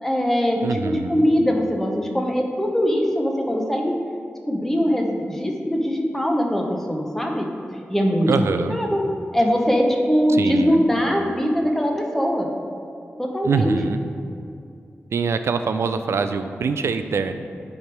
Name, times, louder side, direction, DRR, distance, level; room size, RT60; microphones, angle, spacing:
voice 1, 0.0-4.0 4.5-7.5 7.9-8.3 8.7-9.0 9.3-12.5 13.2-13.7, equal, 10° left, 1 dB, 0.7 m, -21 dB
voice 2, 0.6-1.2 8.3-8.8 10.3-10.8 13.4-14.0 15.1-17.3, right 5 dB, 90° right, 9 dB, 0.4 m, -23 dB
8.9 x 3.5 x 4.6 m, 2.5 s
wide cardioid pair, 140°, 4 cm